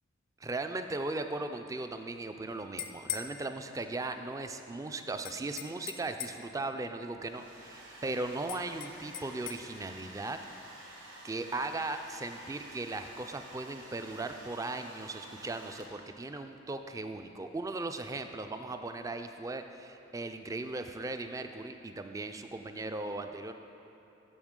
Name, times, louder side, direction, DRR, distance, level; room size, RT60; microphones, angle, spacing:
voice 1, 0.4-10.4 11.2-23.5, right 2 dB, 15° right, 7 dB, 0.3 m, -38 dB
sound 1, 2.6-3.3 5.2-6.5 8.5-9.6, left 10 dB, 45° left, 0.4 m, -40 dB
Domestic sounds home sounds, 7.0-16.2, right 1 dB, 75° right, 1.5 m, -51 dB
13.0 x 5.0 x 3.7 m, 3.0 s
head